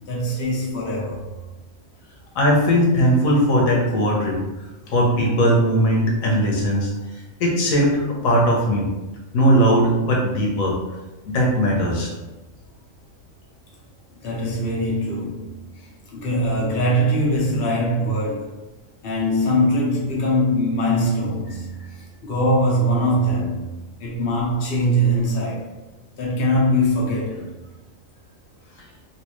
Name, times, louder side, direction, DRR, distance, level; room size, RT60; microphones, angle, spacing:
voice 1, 0.0-1.3 14.2-18.6 19.0-23.7 24.0-25.7 26.1-27.5, equal, 50° left, 1.0 m, -22 dB
voice 2, 2.3-4.4 4.9-6.9 7.4-8.9 9.3-10.8 11.2-12.1, equal, 80° left, 1.2 m, -19 dB
3.2 x 2.8 x 3.0 m
omnidirectional pair, 1.4 m